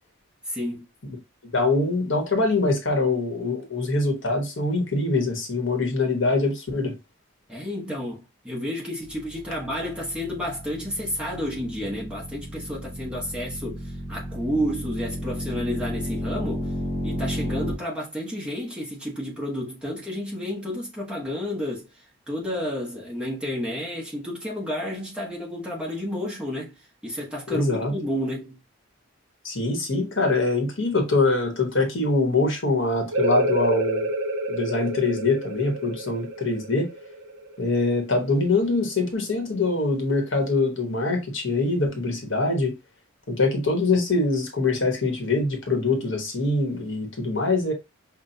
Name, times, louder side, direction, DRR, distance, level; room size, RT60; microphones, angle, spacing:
voice 1, 0.4-0.8 7.5-16.7 17.0-26.8 27.0-28.6, equal, 5° right, 1.0 m, -31 dB
voice 2, 1.5-6.9 27.5-27.9 29.4-34.1 34.5-36.9 37.6-42.7 43.3-47.7, left 3 dB, 60° left, 1.2 m, -24 dB
sound 1, 9.1-17.7, equal, 30° right, 1.4 m, -33 dB
sound 2, 33.1-38.5, right 1 dB, 60° right, 0.4 m, -29 dB
5.7 x 2.4 x 2.7 m
head